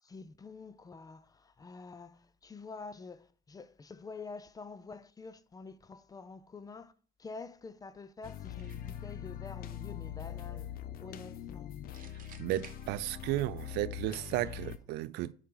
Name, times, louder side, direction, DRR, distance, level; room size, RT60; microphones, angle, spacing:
voice 1, 0.0-6.9 7.2-11.8, left 4 dB, 20° left, 0.5 m, -48 dB
sound 1, 8.2-14.8, left 10 dB, 60° left, 0.7 m, -43 dB
sound 2, 8.6-9.1 11.9-13.5, right 8 dB, 55° right, 1.0 m, -56 dB
voice 2, 12.4-15.3, right 15 dB, 85° right, 0.4 m, -34 dB
6.0 x 5.0 x 4.7 m
cardioid pair, 110°, 17 cm